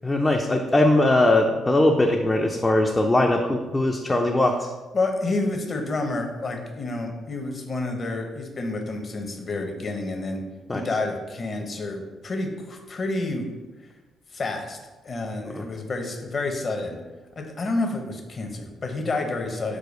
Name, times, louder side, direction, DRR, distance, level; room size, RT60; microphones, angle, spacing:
voice 1, 0.0-4.7 10.7-10.8 15.5-15.7, left 1 dB, 20° left, 1 dB, 0.4 m, -20 dB
voice 2, 4.9-10.4 10.7-13.5 14.3-14.8 15.0-17.0 17.4-19.8, left 2 dB, 40° left, 4 dB, 0.8 m, -29 dB
4.9 x 2.2 x 4.9 m, 1.2 s
cardioid pair, 90°, 0 cm